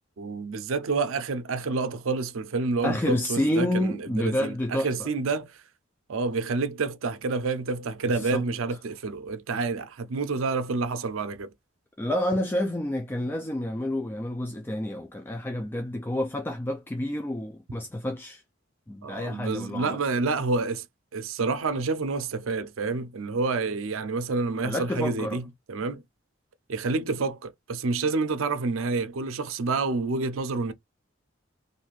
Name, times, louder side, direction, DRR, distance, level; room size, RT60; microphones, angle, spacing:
voice 1, 0.2-5.6 6.1-11.5 19.0-20.8 21.1-25.4 25.7-26.0 26.7-30.7, right 3 dB, 85° right, 0.5 m, -28 dB
voice 2, 2.8-5.1 8.1-8.5 12.0-18.4 18.9-20.0 24.6-25.4, left 1 dB, 10° left, 0.3 m, -29 dB
2.7 x 2.4 x 3.0 m
head